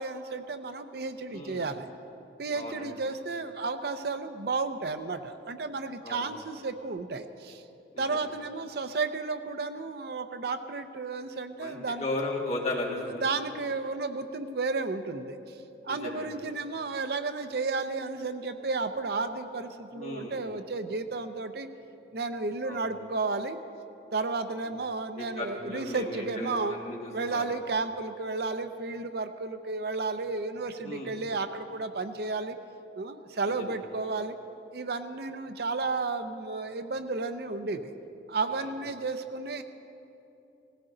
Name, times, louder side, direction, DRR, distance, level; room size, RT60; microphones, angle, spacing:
voice 1, 0.0-1.9 2.4-7.6 8.0-12.0 13.0-15.6 15.8-21.7 22.1-23.6 24.1-26.7 27.1-32.6 32.9-34.3 34.7-37.9 38.3-39.6, right 3 dB, 60° right, 9 dB, 0.6 m, -33 dB
voice 2, 1.3-1.6 2.5-2.9 6.0-6.3 7.9-8.1 11.6-13.2 15.9-16.3 19.9-20.4 22.6-22.8 24.5-24.6 25.2-27.0 27.3-27.5 30.8-31.1 33.5-33.6 38.5-38.7, left 2 dB, 40° left, -2 dB, 1.9 m, -35 dB
18.0 x 16.0 x 3.9 m, 2.9 s
head